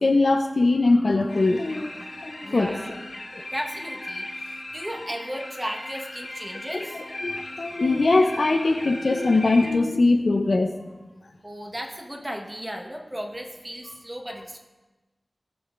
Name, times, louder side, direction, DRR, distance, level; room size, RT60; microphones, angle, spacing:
voice 1, 0.0-2.7 3.3-3.4 5.0-5.1 6.7-10.7, left 3 dB, 65° left, 4 dB, 0.6 m, -22 dB
sound 1, 1.3-9.7, left 1 dB, 50° left, 1.4 m, -37 dB
voice 2, 2.4-3.0 3.5-7.0 11.4-14.6, equal, 20° right, 2 dB, 1.2 m, -35 dB
17.5 x 6.2 x 2.5 m, 1.2 s
wide cardioid pair, 65°, 0 cm